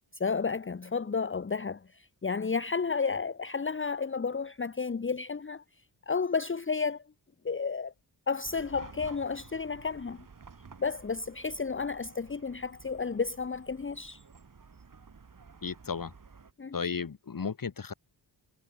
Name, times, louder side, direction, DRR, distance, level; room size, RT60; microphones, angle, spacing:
voice 1, 0.2-5.6 6.1-7.0 7.4-7.9 8.3-10.2 10.8-14.2 16.6-16.8, left 5 dB, 25° left, 1.1 m, -32 dB
Chatter / Car passing by / Traffic noise roadway noise, 8.4-16.5, right 5 dB, 45° right, 3.1 m, -52 dB
voice 2, 15.6-16.1 16.7-17.9, left 5 dB, 45° left, 2.5 m, -34 dB
cardioid pair, 60°, 46 cm